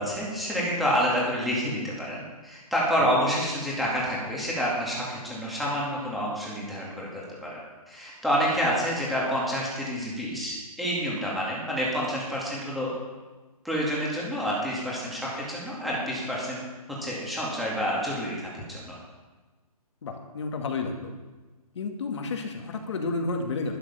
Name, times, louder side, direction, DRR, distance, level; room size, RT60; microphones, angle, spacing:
voice 1, 0.0-7.6 7.9-12.9 13.6-16.6 17.0-19.0, equal, ahead, -6 dB, 2.2 m, -28 dB
voice 2, 20.0-21.1 21.8-23.8, left 3 dB, 45° left, 4 dB, 2.1 m, -31 dB
12.0 x 11.0 x 5.6 m, 1.2 s
hypercardioid pair, 170°, 20 cm